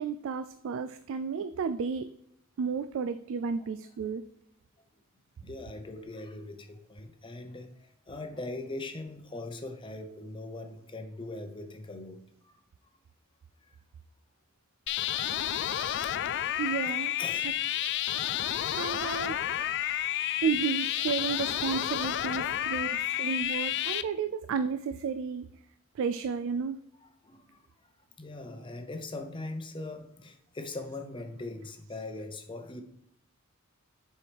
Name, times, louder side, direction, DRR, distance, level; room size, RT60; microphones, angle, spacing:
voice 1, 0.0-2.1 2.6-4.2 16.6-17.1 18.7-19.4 20.4-25.5 26.0-26.8, right 6 dB, 65° right, 10 dB, 0.3 m, -32 dB
voice 2, 5.4-7.7 8.1-12.3 16.0-16.1 16.9-17.0 17.2-17.7 22.4-22.9 27.0-27.6 28.2-32.8, left 2 dB, 25° left, 6 dB, 0.7 m, -41 dB
sound 1, 14.9-24.0, left 11 dB, 55° left, 0.3 m, -30 dB
7.0 x 4.6 x 3.4 m, 0.77 s
head